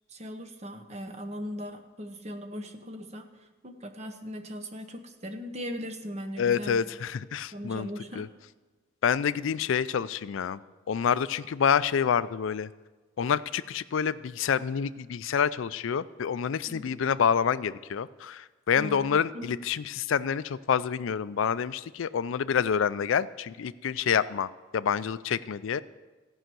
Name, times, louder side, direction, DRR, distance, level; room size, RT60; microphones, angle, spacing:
voice 1, 0.1-6.8 7.5-8.2 16.7-17.0 18.8-19.6, equal, 35° right, 7 dB, 0.8 m, -39 dB
voice 2, 6.4-7.9 8.2-8.3 9.0-10.6 10.9-12.7 13.2-25.8, left 7 dB, 75° left, 16 dB, 0.4 m, -27 dB
14.0 x 5.6 x 7.7 m, 1.3 s
head